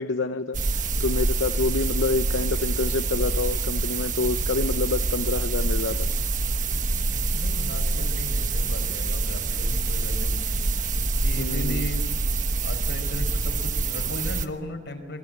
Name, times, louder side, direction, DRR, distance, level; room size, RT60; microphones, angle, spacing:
voice 1, 0.0-6.1 11.4-11.9, left 3 dB, 85° left, 9 dB, 0.8 m, -27 dB
sound 1, 0.5-14.5, right 3 dB, 45° right, 1.2 m, -26 dB
voice 2, 6.9-12.1 12.5-15.2, left 1 dB, 60° left, 4 dB, 4.8 m, -37 dB
27.5 x 21.5 x 8.8 m, 1.3 s
head